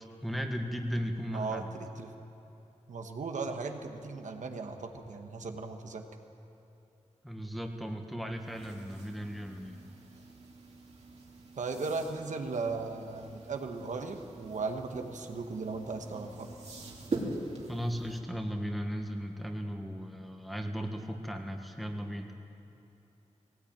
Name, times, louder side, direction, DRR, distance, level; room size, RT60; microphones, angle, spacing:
voice 1, 0.2-1.7 7.2-9.9 17.7-22.3, equal, ahead, 3 dB, 1.6 m, -36 dB
voice 2, 1.3-2.1 2.9-6.0 11.6-16.5, right 4 dB, 75° right, 4 dB, 1.6 m, -37 dB
sound 1, 8.3-18.2, right 2 dB, 55° right, 3.1 m, -43 dB
19.5 x 18.0 x 9.1 m, 3.0 s
wide cardioid pair, 135°, 13 cm